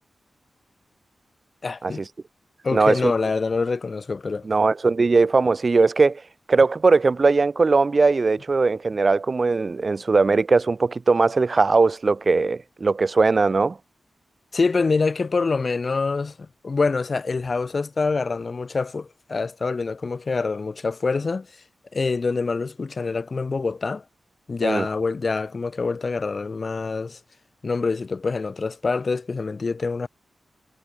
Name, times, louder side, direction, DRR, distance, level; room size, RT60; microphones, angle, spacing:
voice 1, 1.6-2.0 2.6-4.5 14.5-21.5 21.9-24.0 24.5-27.2 27.6-30.1, left 4 dB, 40° left, 0.7 m, -25 dB
voice 2, 2.7-3.1 4.5-6.2 6.5-13.8 24.6-24.9, right 4 dB, 35° right, 0.5 m, -19 dB
wide cardioid pair, 170°, 0 cm